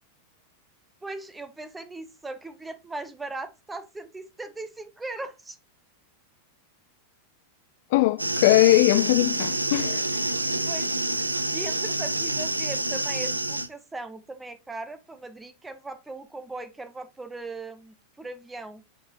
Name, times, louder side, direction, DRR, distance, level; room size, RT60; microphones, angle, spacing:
voice 1, 1.0-5.6 10.6-18.8, right 2 dB, 10° right, 1.0 m, -39 dB
voice 2, 7.9-10.1, left 17 dB, 50° left, 0.3 m, -20 dB
sound 1, 8.2-13.7, right 2 dB, 85° right, 0.5 m, -27 dB
8.2 x 4.0 x 2.9 m
figure-of-eight pair, 90°, 0 cm